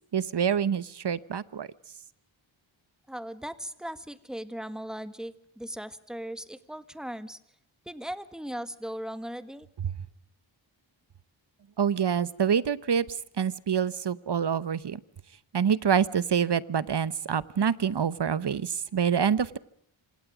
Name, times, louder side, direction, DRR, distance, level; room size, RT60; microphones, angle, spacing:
voice 1, 0.1-1.7 9.8-9.9 11.8-13.0 13.4-15.0 15.5-19.6, right 7 dB, 55° right, 17 dB, 1.0 m, -26 dB
voice 2, 3.1-7.4 7.8-9.7, equal, ahead, 12 dB, 1.6 m, -38 dB
27.0 x 26.5 x 5.1 m, 0.69 s
wide cardioid pair, 95°, 48 cm